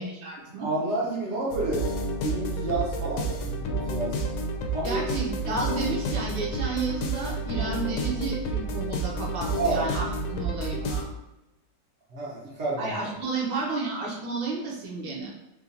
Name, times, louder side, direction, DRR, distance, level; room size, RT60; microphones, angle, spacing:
voice 1, 0.0-0.7 4.8-11.0 12.8-15.3, right 3 dB, 75° right, -4 dB, 1.6 m, -32 dB
voice 2, 0.6-1.9 2.2-4.3 4.7-5.0 5.4-5.5 9.6-9.9 12.1-12.9, right 2 dB, 55° right, -5 dB, 0.8 m, -30 dB
sound 1, 1.5-11.0, right 2 dB, 80° left, 1.3 m, -30 dB
4.4 x 2.3 x 2.6 m, 0.94 s
omnidirectional pair, 2.2 m